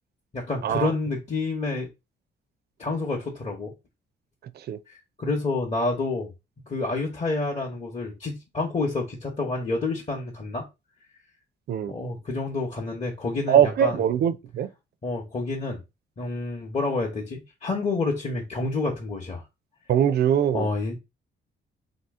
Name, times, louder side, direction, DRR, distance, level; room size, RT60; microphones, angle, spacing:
voice 1, 0.3-1.9 2.8-3.7 4.9-6.3 6.7-10.7 11.9-14.0 15.0-15.8 16.2-19.4 20.5-21.0, left 3 dB, 30° left, 0.8 m, -28 dB
voice 2, 13.5-14.7 19.9-20.7, right 9 dB, 55° right, 0.4 m, -22 dB
2.8 x 2.7 x 3.5 m
cardioid pair, 90°, 20 cm